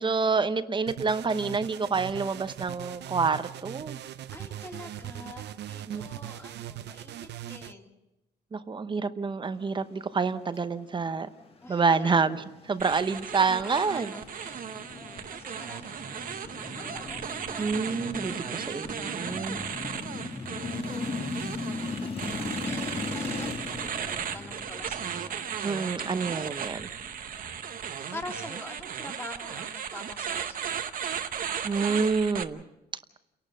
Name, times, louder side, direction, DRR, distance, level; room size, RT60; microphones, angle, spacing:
voice 1, 0.0-4.0 5.9-6.0 8.5-11.3 11.7-12.4 12.7-14.1 17.6-19.6 25.6-26.9 31.6-32.6, right 4 dB, 25° right, 12 dB, 0.8 m, -28 dB
sound 1, 0.9-7.7, right 12 dB, 75° right, 0.6 m, -40 dB
voice 2, 4.3-7.9 11.6-12.3 13.4-17.8 20.5-21.2 22.6-25.5 28.1-30.8, left 2 dB, 15° left, 2 dB, 2.2 m, -45 dB
sound 2, 11.6-28.4, left 3 dB, 35° left, 1.6 m, -39 dB
sound 3, 12.8-32.4, right 8 dB, 50° right, 1.0 m, -36 dB
29.5 x 11.5 x 7.6 m, 0.94 s
cardioid pair, 145°, 18 cm